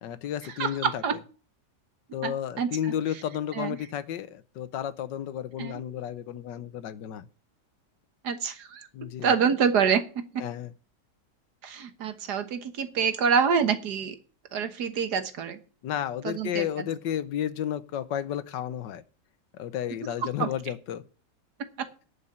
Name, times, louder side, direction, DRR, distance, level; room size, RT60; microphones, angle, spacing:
voice 1, 0.0-1.2 2.1-7.3 8.9-9.3 10.4-10.7 15.8-19.0 19.5-21.0, left 10 dB, 80° left, 14 dB, 1.5 m, -32 dB
voice 2, 0.6-1.2 2.2-2.8 3.6-3.8 5.6-5.8 8.2-8.9 9.2-10.5 11.6-14.2 14.5-15.6 16.2-16.7 20.4-20.5 21.8-21.9, right 6 dB, 65° right, 9 dB, 1.7 m, -26 dB
11.0 x 5.4 x 8.5 m, 0.38 s
omnidirectional pair, 1.9 m